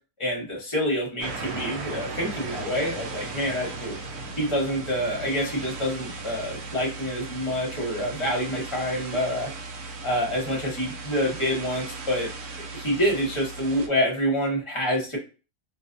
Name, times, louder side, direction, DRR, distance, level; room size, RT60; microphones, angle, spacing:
voice 1, 0.2-4.0 4.4-9.5 10.0-12.3 12.7-15.2, equal, 25° left, -2 dB, 0.7 m, -27 dB
sound 1, 1.2-13.9, right 3 dB, 80° right, 1.1 m, -37 dB
2.5 x 2.3 x 2.5 m, 0.33 s
omnidirectional pair, 1.6 m